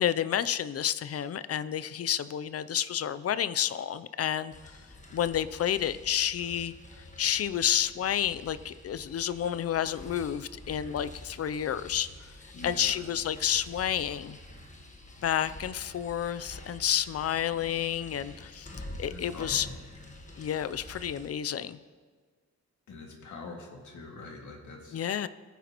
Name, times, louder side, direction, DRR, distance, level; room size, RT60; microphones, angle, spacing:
voice 1, 0.0-4.8 5.1-12.1 12.6-14.4 15.2-19.7 20.4-21.8 24.9-25.3, left 10 dB, 50° left, 14 dB, 0.5 m, -30 dB
sound 1, 4.5-21.3, left 1 dB, 25° left, 1.4 m, -47 dB
voice 2, 12.5-13.0 19.1-19.8 22.9-25.0, left 3 dB, 75° left, 1 dB, 2.1 m, -45 dB
20.0 x 9.4 x 3.0 m, 1.5 s
wide cardioid pair, 120°, 30 cm